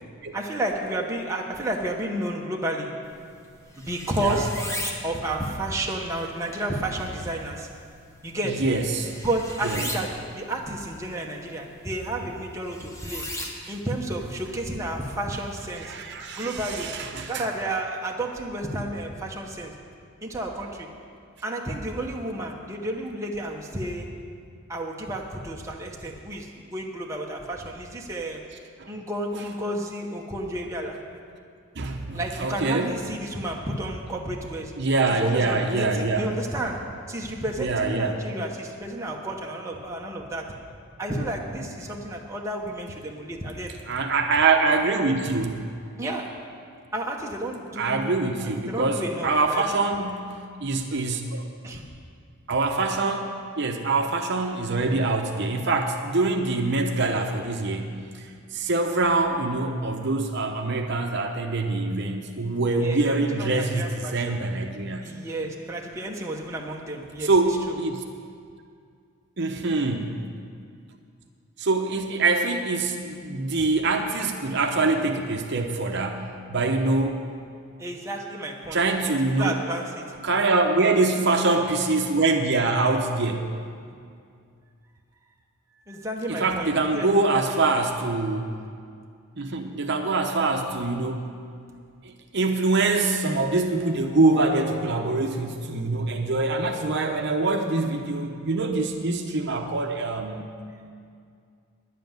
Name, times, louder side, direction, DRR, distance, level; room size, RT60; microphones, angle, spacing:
voice 1, 0.3-3.1 3.8-4.6 5.0-7.7 8.2-8.7 9.2-13.3 13.7-15.9 16.4-17.0 17.3-19.8 20.2-20.9 21.4-24.1 24.7-28.5 28.9-31.0 32.1-34.8 35.1-40.6 41.0-43.8 46.0-46.4 46.9-49.6 51.6-51.9 62.8-64.4 65.0-67.3 67.7-67.8 77.8-80.2 85.9-87.1, right 1 dB, 15° right, -1 dB, 1.0 m, -31 dB
sound 1, 3.0-16.5, left 1 dB, 15° left, 1.0 m, -40 dB
voice 2, 8.5-9.1 9.6-9.8 13.6-13.7 15.8-17.4 31.8-33.0 34.8-36.3 37.6-38.2 43.9-45.6 47.8-50.3 50.6-51.5 52.5-53.3 53.6-65.1 67.2-68.0 69.4-70.1 71.6-77.2 78.7-79.6 80.2-83.5 86.3-88.5 89.4-91.3 92.0-100.5, right 3 dB, 55° right, 3 dB, 0.8 m, -24 dB
10.5 x 7.6 x 9.2 m, 2.3 s
head